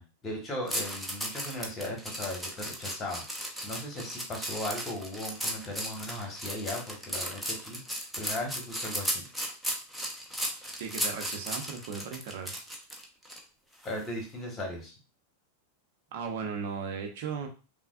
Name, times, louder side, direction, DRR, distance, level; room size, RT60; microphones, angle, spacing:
voice 1, 0.0-9.2 13.8-14.9, left 1 dB, 20° left, 0 dB, 1.5 m, -37 dB
sound 1, 0.7-13.4 13.8-14.1, equal, ahead, 0.8 m, -35 dB
voice 2, 10.8-12.6 16.1-17.5, right 6 dB, 50° right, 3 dB, 1.0 m, -36 dB
5.6 x 2.3 x 2.6 m, 0.33 s
figure-of-eight pair, 90°, 0 cm